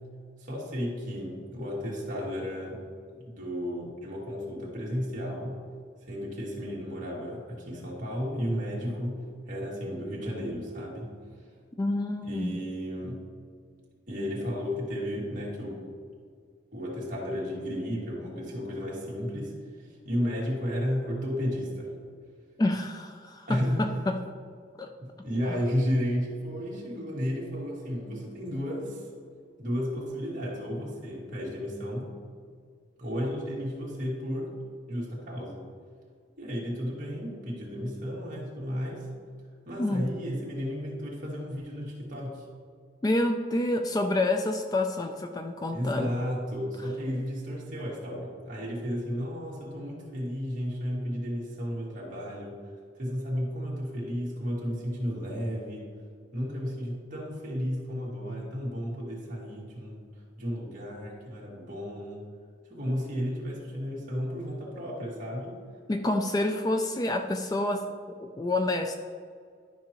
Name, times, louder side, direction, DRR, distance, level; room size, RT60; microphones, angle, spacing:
voice 1, 0.4-2.8 3.1-5.6 6.0-9.2 9.5-11.1 11.4-11.5 12.2-13.2 14.1-15.9 16.7-21.9 23.5-23.9 25.0-29.1 29.6-32.1 33.0-34.5 34.9-35.6 36.4-39.1 39.7-42.5 45.7-52.6 52.9-55.9 56.3-62.3 62.7-65.6, equal, 45° right, -5 dB, 2.1 m, -33 dB
voice 2, 11.8-12.6 22.6-24.2 24.7-24.9 25.5-25.6 39.8-40.0 43.0-46.1 65.9-68.9, left 2 dB, 20° left, 5 dB, 0.3 m, -28 dB
12.0 x 5.6 x 3.0 m, 2.1 s
head